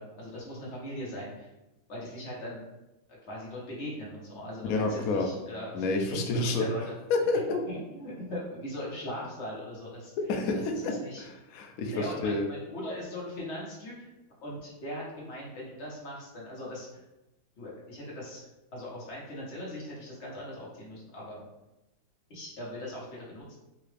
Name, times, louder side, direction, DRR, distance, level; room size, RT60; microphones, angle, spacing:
voice 1, 0.0-1.5 1.9-2.6 3.3-7.0 7.7-10.1 10.5-11.2 11.9-13.9 14.4-17.0 17.6-21.4 22.3-23.6, left 1 dB, 40° left, -5 dB, 1.1 m, -40 dB
voice 2, 4.7-5.3 5.7-6.7 7.1-7.6 10.3-12.5, left 3 dB, 90° left, 3 dB, 0.7 m, -29 dB
3.8 x 2.5 x 3.3 m, 0.99 s
omnidirectional pair, 2.1 m